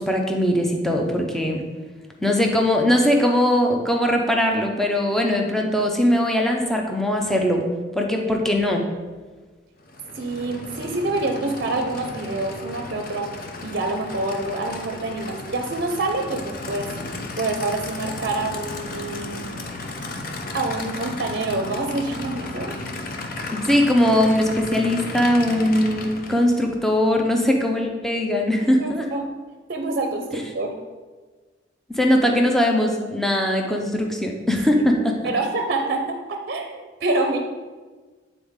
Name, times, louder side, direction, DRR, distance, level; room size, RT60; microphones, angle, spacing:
voice 1, 0.0-1.6 2.2-7.6 7.9-8.8 23.5-29.1 31.9-35.2, left 1 dB, ahead, 1 dB, 0.6 m, -20 dB
Aircraft / Idling, 9.8-26.7, left 2 dB, 50° left, 0.6 m, -34 dB
voice 2, 10.1-13.3 13.6-16.9 17.3-19.4 20.5-22.7 28.6-29.3 29.7-30.7 34.7-34.8 35.2-37.4, right 2 dB, 55° right, 4 dB, 0.6 m, -26 dB
9.0 x 4.0 x 3.6 m, 1.4 s
head